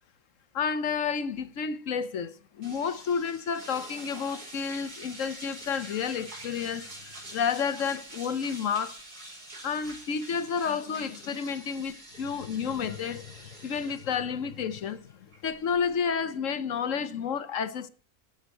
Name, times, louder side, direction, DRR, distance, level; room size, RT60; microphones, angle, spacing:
voice 1, 0.5-9.0 9.6-17.9, left 6 dB, 60° left, 1.2 m, -31 dB
sound 1, 2.6-16.1, right 1 dB, 90° right, 5.3 m, -46 dB
17.5 x 7.3 x 4.4 m
omnidirectional pair, 1.6 m